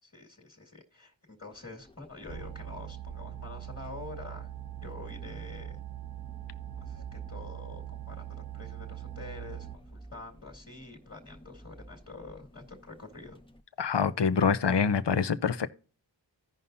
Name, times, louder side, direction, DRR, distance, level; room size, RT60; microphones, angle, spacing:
voice 1, 0.0-4.5 4.8-5.8 6.8-13.4, left 3 dB, 35° left, 1.9 m, -47 dB
sound 1, 1.5-13.6, equal, 10° left, 0.7 m, -52 dB
sound 2, 2.3-9.8, right 15 dB, 50° right, 0.4 m, -42 dB
voice 2, 13.8-15.7, left 6 dB, 65° left, 0.7 m, -25 dB
16.0 x 5.5 x 2.6 m
wide cardioid pair, 45°, 45 cm